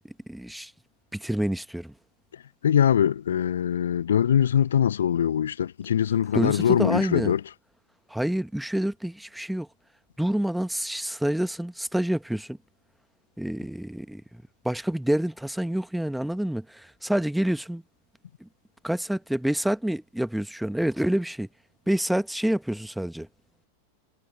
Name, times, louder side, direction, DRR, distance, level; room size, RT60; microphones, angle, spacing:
voice 1, 0.0-0.7 1.1-1.9 6.3-7.3 8.1-9.7 10.2-12.6 13.4-17.8 18.4-18.5 18.8-21.5 21.9-23.3, right 1 dB, ahead, 1.5 m, -28 dB
voice 2, 2.6-7.4, left 9 dB, 65° left, 1.2 m, -22 dB
figure-of-eight pair, 90°, 0 cm